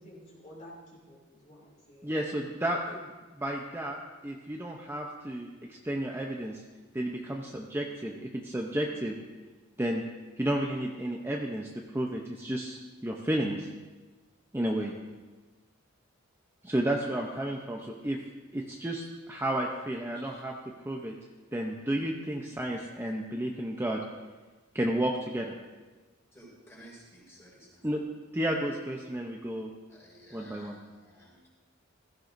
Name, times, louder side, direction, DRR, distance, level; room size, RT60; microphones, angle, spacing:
voice 1, 0.0-2.1, equal, 40° left, -5 dB, 3.0 m, -51 dB
voice 2, 2.0-3.1 3.4-4.0 4.2-6.6 6.9-9.1 9.8-10.0 10.4-13.7 14.5-14.9 16.6-18.2 18.5-20.5 20.8-21.1 21.5-24.0 24.7-25.5 27.8-28.0 28.3-29.7 30.3-30.8, right 1 dB, 10° right, 0 dB, 0.7 m, -32 dB
voice 3, 26.3-27.8 29.9-31.4, equal, 15° left, -6 dB, 5.0 m, -54 dB
16.0 x 15.0 x 2.6 m, 1.3 s
head